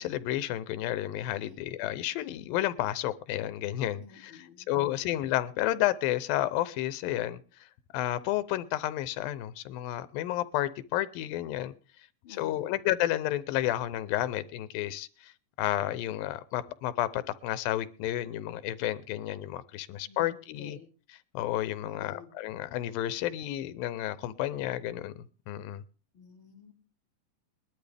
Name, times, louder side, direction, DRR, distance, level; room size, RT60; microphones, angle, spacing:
voice 1, 0.0-7.7 7.9-11.7 12.3-15.3 15.6-20.8 21.1-25.8, left 14 dB, 85° left, 2.6 m, -31 dB
voice 2, 1.4-1.8 4.0-5.0 12.2-12.7 20.1-20.9 21.8-22.3 26.1-26.7, left 5 dB, 35° left, 3.0 m, -52 dB
21.0 x 12.0 x 3.4 m
omnidirectional pair, 4.0 m